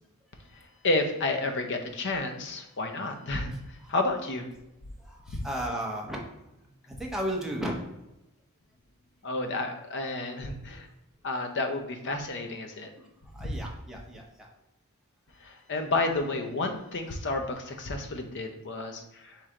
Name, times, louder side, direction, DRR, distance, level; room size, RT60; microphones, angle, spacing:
voice 1, 0.5-4.5 5.3-5.4 9.2-10.9 11.2-12.9 13.4-13.6 15.4-19.4, left 2 dB, 55° left, 5 dB, 0.6 m, -31 dB
voice 2, 5.0-6.2 6.9-7.8 13.0-13.1 13.3-14.5, equal, ahead, -1 dB, 0.8 m, -34 dB
4.5 x 3.2 x 3.7 m, 0.92 s
head